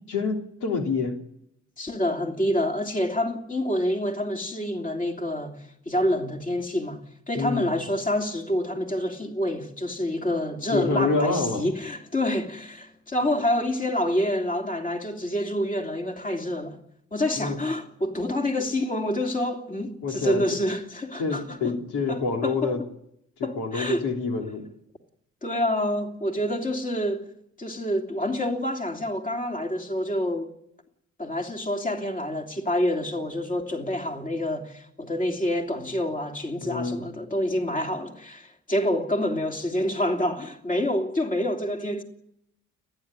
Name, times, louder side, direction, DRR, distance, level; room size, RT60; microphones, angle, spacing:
voice 1, 0.1-1.2 7.3-7.7 10.7-11.7 17.4-17.6 20.0-20.4 21.2-22.8 23.4-24.7 36.6-37.0, left 4 dB, 80° left, 3.3 m, -27 dB
voice 2, 1.8-7.0 7.3-16.8 17.1-21.7 22.1-22.7 23.4-24.1 25.4-27.3 27.6-30.5 31.2-42.0, left 1 dB, 25° left, 3.0 m, -27 dB
29.5 x 10.5 x 9.8 m
cardioid pair, 90°, 30 cm